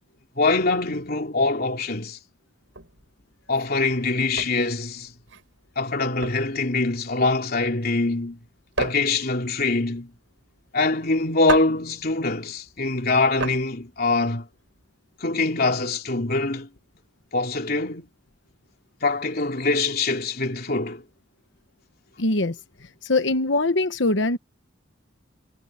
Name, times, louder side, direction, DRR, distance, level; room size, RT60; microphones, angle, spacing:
voice 1, 0.4-2.2 3.5-5.1 5.7-8.4 8.8-10.1 10.7-14.5 15.2-16.7 17.3-18.1 19.0-21.0, left 3 dB, 50° left, 3.3 m, -24 dB
sound 1, 2.7-14.9, right 3 dB, 80° right, 6.4 m, -35 dB
voice 2, 22.2-22.6 23.0-24.4, left 2 dB, 65° left, 1.2 m, -22 dB
head